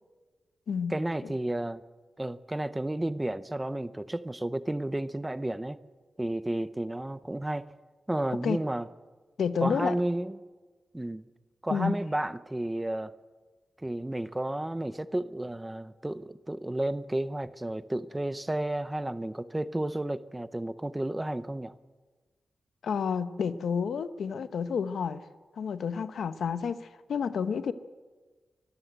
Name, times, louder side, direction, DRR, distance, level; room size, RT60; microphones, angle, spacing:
voice 1, 0.9-1.8 2.2-5.8 6.2-7.7 8.1-8.9 9.6-10.4 10.9-11.2 11.6-13.1 13.8-21.8, right 1 dB, 10° right, 15 dB, 0.6 m, -32 dB
voice 2, 9.4-9.9 11.7-11.9 22.8-25.2 25.6-27.7, left 6 dB, 80° left, 12 dB, 0.9 m, -30 dB
24.0 x 14.0 x 8.0 m, 1.3 s
wide cardioid pair, 135°, 0 cm